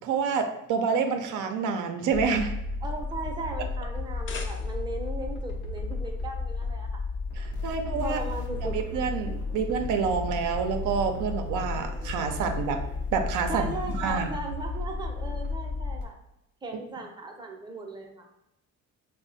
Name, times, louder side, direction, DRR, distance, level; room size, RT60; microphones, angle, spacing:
voice 1, 0.0-2.5 7.4-8.2 8.7-12.8 13.1-13.7 14.0-14.3, right 5 dB, 80° right, 5 dB, 0.5 m, -28 dB
sound 1, 2.1-16.0, left 3 dB, 80° left, 0.7 m, -33 dB
voice 2, 2.8-6.9 8.0-8.8 13.5-16.2 16.6-18.3, right 2 dB, 15° right, 2 dB, 0.5 m, -37 dB
sound 2, 4.0-5.1, left 4 dB, 40° left, 0.4 m, -42 dB
3.1 x 2.1 x 3.9 m, 0.85 s
cardioid pair, 90°, 30 cm